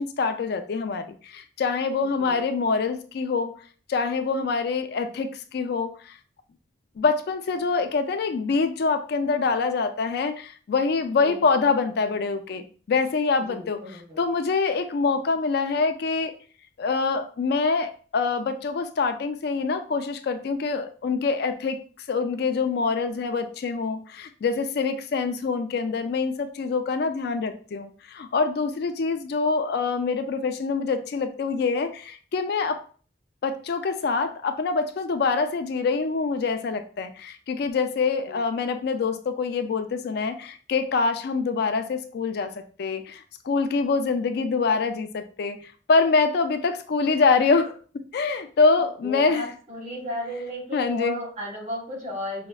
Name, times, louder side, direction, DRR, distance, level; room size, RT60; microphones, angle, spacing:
voice 1, 0.0-3.5 3.9-6.1 7.0-13.8 14.2-16.3 16.8-21.8 22.1-32.8 33.4-45.6 45.9-47.8 48.1-49.4 50.7-51.2, left 4 dB, 60° left, 8 dB, 0.4 m, -25 dB
voice 2, 11.0-11.6 13.4-14.2 38.3-38.4 49.0-52.5, equal, 40° right, -1 dB, 1.1 m, -35 dB
4.9 x 2.1 x 2.3 m, 0.40 s
head